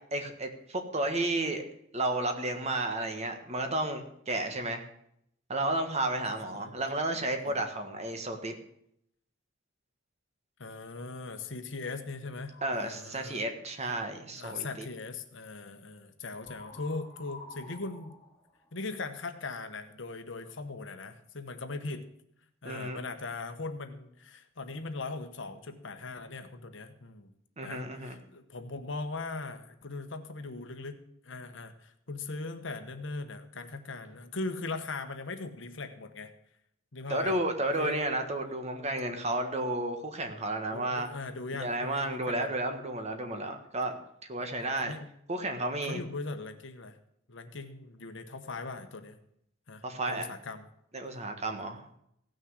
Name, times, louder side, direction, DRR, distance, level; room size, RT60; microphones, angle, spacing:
voice 1, 0.1-1.6 1.9-4.8 5.5-8.5 12.6-14.9 22.6-23.0 27.6-28.2 37.1-41.1 41.5-44.0 44.3-45.0 45.3-46.0 49.8-50.3 50.9-51.8, right 2 dB, 35° right, 6 dB, 1.5 m, -32 dB
voice 2, 6.2-6.7 7.4-7.6 10.6-13.4 14.4-18.2 18.7-22.0 22.6-27.3 27.6-36.3 36.9-37.4 37.8-38.0 40.7-42.5 44.8-45.1 45.8-47.0 47.3-49.2 49.7-50.7, left 3 dB, 65° left, 8 dB, 1.1 m, -40 dB
sound 1, 12.5-13.0 16.3-19.1, left 3 dB, 5° left, 3.3 m, -49 dB
16.5 x 6.4 x 6.4 m, 0.73 s
head